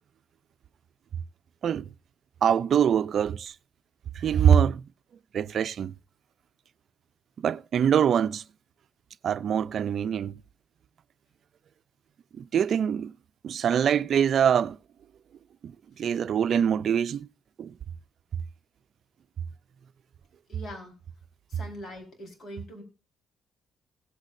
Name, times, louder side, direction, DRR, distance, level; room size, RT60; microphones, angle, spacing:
voice 1, 2.4-3.5 4.2-4.8 5.3-5.9 7.4-8.4 9.2-10.4 12.4-13.1 13.4-14.8 15.6-15.7 16.0-17.3 17.6-17.7, right 8 dB, 60° right, 0.4 m, -24 dB
voice 2, 20.5-21.0 21.5-22.8, equal, 55° left, 4.2 m, -42 dB
17.0 x 8.1 x 2.6 m
cardioid pair, 90°, 0 cm